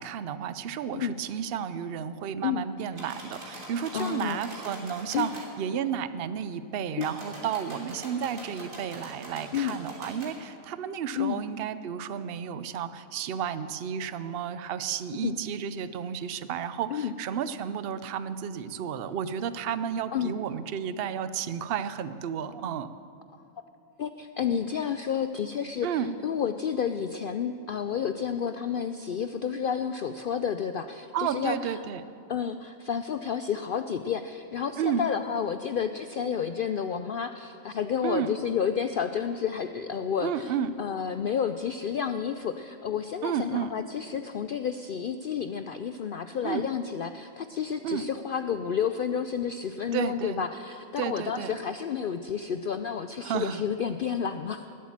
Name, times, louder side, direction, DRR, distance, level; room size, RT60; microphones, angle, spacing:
voice 1, 0.0-22.9 25.8-26.2 31.1-32.0 34.8-35.1 38.0-38.3 40.2-40.7 43.2-43.7 46.4-46.6 47.8-48.1 49.9-50.4 51.0-51.5 53.2-53.6, right 8 dB, 55° right, 13 dB, 0.7 m, -32 dB
sound 1, 2.9-5.5 6.9-10.3, right 1 dB, 75° right, 3.7 m, -43 dB
voice 2, 3.9-4.4 5.1-5.3 7.0-7.1 9.5-9.8 11.2-11.4 15.1-15.3 16.9-17.1 20.1-20.4 24.0-31.6 32.3-40.5 40.8-54.7, left 7 dB, 70° left, 9 dB, 0.5 m, -30 dB
20.0 x 8.4 x 7.3 m, 2.6 s
omnidirectional pair, 1.4 m